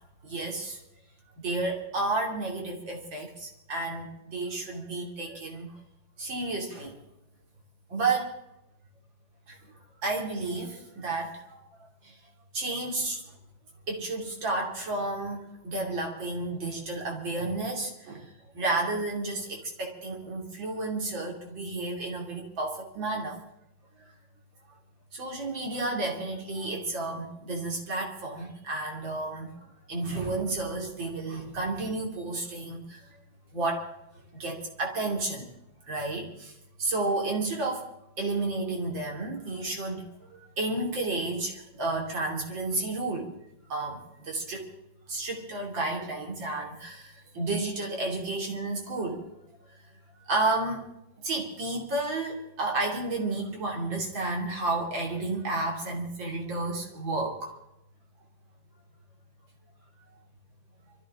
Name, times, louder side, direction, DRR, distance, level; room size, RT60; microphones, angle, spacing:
voice 1, 0.2-0.8 1.4-5.8 6.2-7.0 7.9-8.4 9.5-9.6 10.0-11.6 12.0-12.2 12.5-13.2 13.9-23.4 24.0-24.1 25.1-33.1 33.5-33.9 34.3-35.5 35.9-36.5 36.8-37.9 38.2-43.3 43.7-44.7 45.1-49.3 50.3-50.9 51.2-57.5, right 2 dB, 60° right, 1 dB, 3.5 m, -31 dB
25.0 x 14.0 x 3.7 m, 0.84 s
omnidirectional pair, 2.3 m